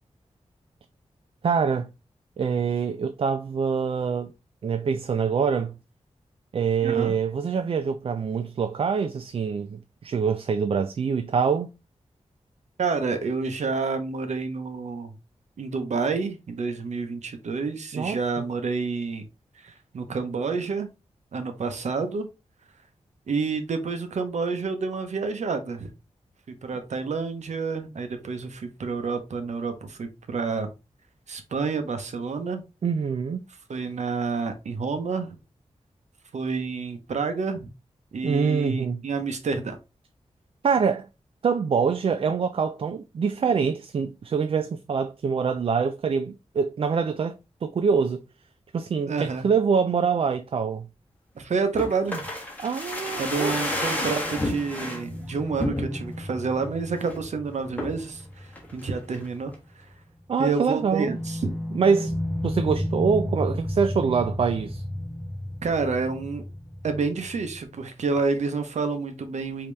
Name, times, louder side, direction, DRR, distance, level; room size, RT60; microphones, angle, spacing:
voice 1, 1.4-1.9 2.4-4.3 4.6-5.8 6.5-11.7 17.9-18.2 32.8-33.4 38.2-39.0 40.6-41.1 41.4-48.2 48.7-50.9 52.6-54.1 60.3-61.2 61.7-62.2 62.4-64.8, right 6 dB, 50° right, 0.4 m, -25 dB
voice 2, 6.8-7.2 12.8-15.1 15.6-19.2 19.6-20.9 21.3-22.3 23.3-25.9 26.6-30.7 31.3-32.6 33.7-35.3 36.3-37.7 38.1-39.8 49.1-49.5 51.4-52.3 53.2-59.5 60.4-61.5 65.6-66.4 66.8-69.7, right 4 dB, 75° right, 0.8 m, -29 dB
sound 1, 51.8-55.0 55.6-56.2 56.6-56.7 57.0-57.3 57.8-58.1 58.6-59.3 59.5-59.6, left 1 dB, 15° left, 1.3 m, -30 dB
sound 2, 54.1-59.5 59.8-59.9 61.1-67.6, left 1 dB, 15° right, 1.1 m, -33 dB
5.1 x 2.9 x 3.2 m
wide cardioid pair, 140°, 12 cm